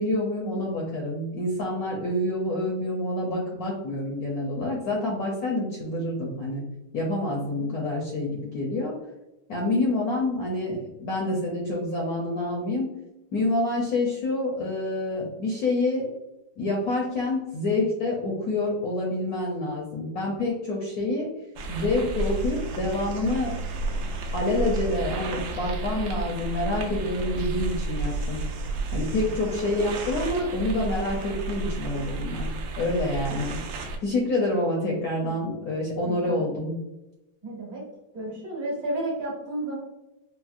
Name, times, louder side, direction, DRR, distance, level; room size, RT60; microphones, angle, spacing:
voice 1, 0.0-6.6 6.9-8.9 9.5-12.9 13.3-16.1 16.6-21.3 21.7-23.5 24.3-28.4 28.9-32.5 32.8-33.6 34.0-36.8, left 2 dB, 70° left, -2 dB, 0.9 m, -27 dB
voice 2, 7.4-7.7 9.8-9.9 29.5-29.7 34.1-34.2 36.1-36.6 37.4-37.8 38.1-39.8, right 1 dB, 55° right, -3 dB, 1.3 m, -33 dB
sound 1, 21.6-34.0, right 3 dB, 75° right, 1.0 m, -31 dB
4.2 x 2.1 x 2.4 m, 0.95 s
omnidirectional pair, 2.0 m